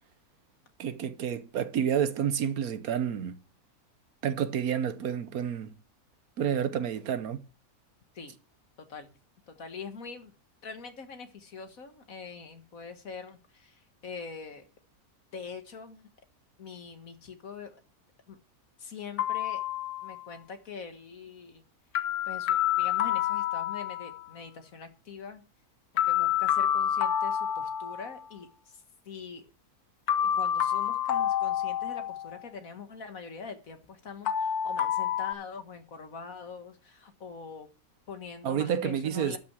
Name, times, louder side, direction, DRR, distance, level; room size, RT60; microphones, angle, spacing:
voice 1, 0.8-3.4 4.2-5.7 6.4-7.4 38.4-39.4, right 8 dB, 75° right, 1.3 m, -29 dB
voice 2, 9.5-10.3 10.6-14.7 15.3-16.1 16.6-17.8 18.3-18.4 18.8-19.6 20.0-21.6 22.3-25.4 26.0-28.8 29.1-29.5 30.3-37.7 38.1-39.4, left 5 dB, 65° left, 2.0 m, -43 dB
sound 1, 19.2-20.3 22.0-24.3 26.0-28.3 30.1-32.4 34.3-35.3, left 10 dB, 90° left, 1.4 m, -28 dB
12.5 x 6.1 x 6.1 m
omnidirectional pair, 1.5 m